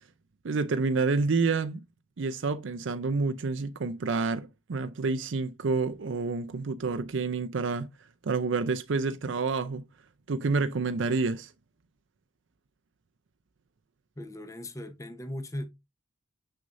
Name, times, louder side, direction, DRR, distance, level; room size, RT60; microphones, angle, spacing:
voice 1, 0.4-1.8 2.2-7.9 8.2-9.8 10.3-11.5, right 4 dB, 75° right, 0.5 m, -28 dB
voice 2, 14.2-15.7, left 1 dB, 15° left, 0.9 m, -38 dB
6.7 x 6.2 x 2.6 m
head